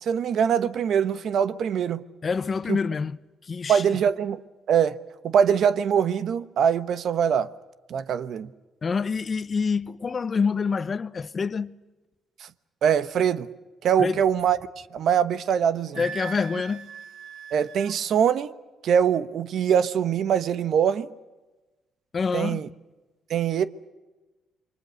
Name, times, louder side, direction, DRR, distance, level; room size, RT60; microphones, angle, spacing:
voice 1, 0.0-2.0 2.7-2.8 3.7-4.4 4.7-5.0 5.2-7.5 7.9-8.5 12.8-13.5 13.8-14.6 14.9-16.0 17.5-18.5 18.8-21.1 22.3-22.7 23.3-23.6, right 8 dB, 65° right, 1.1 m, -23 dB
voice 2, 2.2-3.2 3.4-4.0 8.8-11.7 14.0-14.2 16.0-16.9 22.1-22.7, left 5 dB, 40° left, 0.8 m, -27 dB
Wind instrument woodwind instrument, 15.9-18.0, right 7 dB, 90° right, 1.5 m, -39 dB
28.5 x 24.0 x 6.5 m
cardioid pair, 90°, 0 cm